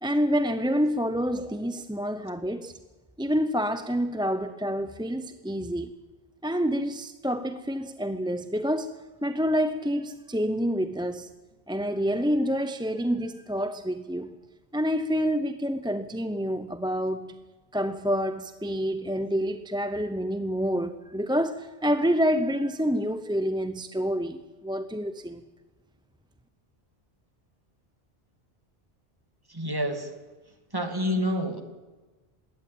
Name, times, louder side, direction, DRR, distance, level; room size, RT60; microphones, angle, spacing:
voice 1, 0.0-2.8 3.2-5.9 6.4-11.3 11.7-14.4 14.7-17.4 17.7-25.4, equal, 5° right, 0.6 m, -28 dB
voice 2, 29.5-30.1 30.7-31.6, equal, 20° right, 2.3 m, -28 dB
21.0 x 17.0 x 8.9 m
omnidirectional pair, 1.1 m